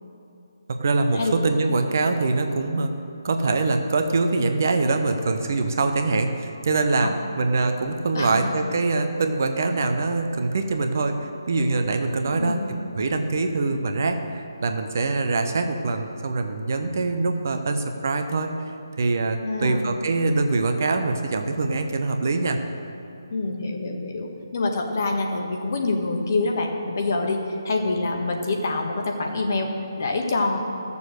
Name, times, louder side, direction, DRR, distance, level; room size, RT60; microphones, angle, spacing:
voice 1, 0.7-2.9 3.2-12.6 12.9-18.5 19.0-22.6, right 3 dB, 45° right, 6 dB, 1.0 m, -24 dB
voice 2, 8.1-8.6 12.3-12.8 19.4-19.9 23.3-29.7 30.0-30.6, left 3 dB, 45° left, 2 dB, 1.6 m, -26 dB
15.5 x 7.0 x 6.5 m, 2.7 s
figure-of-eight pair, 145°, 2 cm